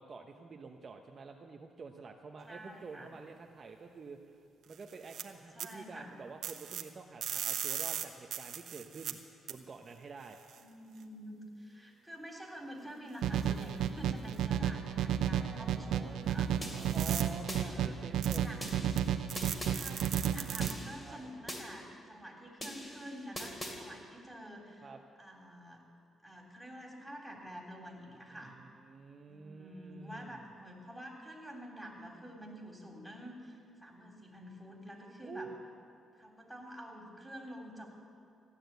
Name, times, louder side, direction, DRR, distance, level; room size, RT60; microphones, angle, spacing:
voice 1, 0.0-4.4 4.7-9.2 9.5-10.4 15.3-16.2 16.5-18.5 21.0-21.2 24.8-25.0 28.3-30.4 35.2-35.7, right 4 dB, 40° right, 3 dB, 0.9 m, -48 dB
voice 2, 2.5-3.1 5.5-6.2 10.6-16.5 17.2-17.3 17.7-18.0 18.4-18.7 19.7-24.9 25.2-25.8 26.2-28.6 29.3-35.5 36.2-37.9, equal, ahead, 0 dB, 3.2 m, -48 dB
sound 1, 4.7-5.2 5.6-5.7 6.4-6.8 7.2-9.1 9.5-9.6 10.5-10.6 13.4-13.6 14.4-14.5 16.8-17.2 18.2-18.4 18.7-19.0 19.3-20.7, right 9 dB, 70° right, 1.0 m, -38 dB
sound 2, 13.2-20.7, right 9 dB, 85° right, 0.6 m, -32 dB
sound 3, 16.6-17.6 18.6-19.8 20.6-21.6 22.6-23.8, equal, 20° left, 2.8 m, -43 dB
15.0 x 10.0 x 8.1 m, 2.4 s
cardioid pair, 90°, 0 cm